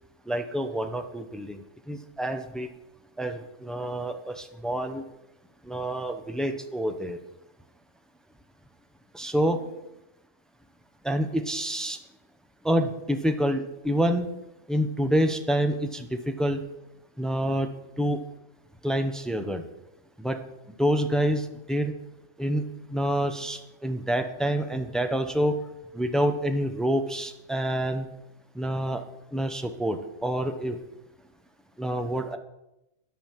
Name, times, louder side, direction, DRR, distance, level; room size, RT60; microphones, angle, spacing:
voice 1, 0.3-2.7 3.2-5.0 5.6-7.2 9.1-9.6 11.0-12.0 12.6-14.3 14.7-16.6 17.2-17.7 18.0-18.2 18.8-19.6 20.2-20.4 20.8-21.9 22.4-22.6 22.9-25.5 25.9-28.1 28.5-29.0 29.3-30.8 31.8-32.4, equal, ahead, 6 dB, 0.3 m, -27 dB
10.5 x 6.0 x 7.2 m, 0.90 s
omnidirectional pair, 1.3 m